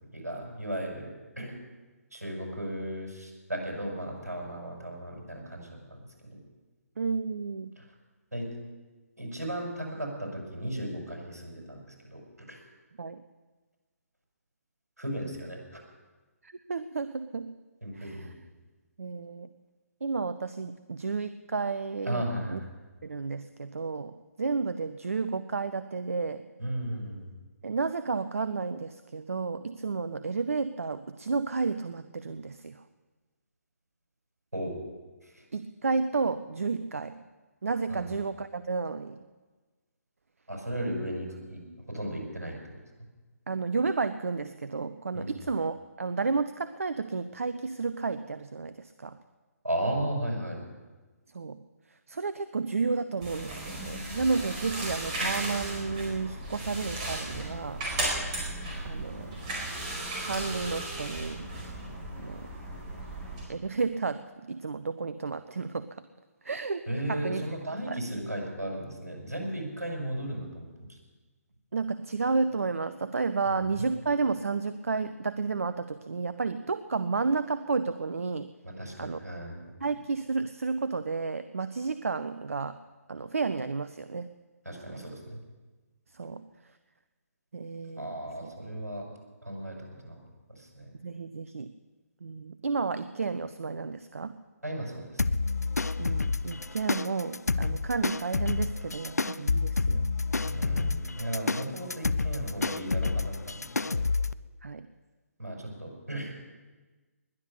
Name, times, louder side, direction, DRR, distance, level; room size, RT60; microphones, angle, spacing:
voice 1, 0.1-1.1 1.4-1.5 2.1-6.4 7.8-7.9 8.3-8.5 9.2-11.8 12.1-12.2 12.5-12.6 15.0-15.8 17.8-18.3 22.1-22.7 26.6-27.3 34.5-34.8 35.2-35.4 37.9-38.0 40.5-41.6 41.9-42.8 45.1-45.4 49.6-50.6 66.9-71.0 73.8-73.9 78.6-79.7 84.6-85.4 88.0-89.1 89.4-90.2 90.5-90.9 94.6-95.4 100.5-104.1 105.4-106.3, right 1 dB, 75° right, 0 dB, 5.9 m, -35 dB
voice 2, 7.0-7.7 13.0-13.2 16.4-17.6 17.9-18.3 19.0-19.5 20.0-22.2 22.5-22.6 23.0-26.5 27.6-32.8 35.5-37.2 37.6-39.2 43.5-49.2 51.3-51.6 51.9-57.8 58.8-59.4 60.2-61.5 62.2-62.5 63.5-66.0 66.4-68.0 71.7-78.5 79.0-79.2 79.8-82.8 83.1-84.3 84.9-85.0 86.1-86.5 87.5-88.2 88.4-88.5 91.0-91.7 92.2-94.4 96.0-101.0 104.6-104.9, right 4 dB, 60° right, 13 dB, 0.7 m, -32 dB
sound 1, 53.2-63.4, right 1 dB, 25° right, 4.7 m, -35 dB
sound 2, 95.2-104.3, left 4 dB, 75° left, 0.5 m, -29 dB
20.5 x 10.0 x 6.7 m, 1.3 s
figure-of-eight pair, 140°, 9 cm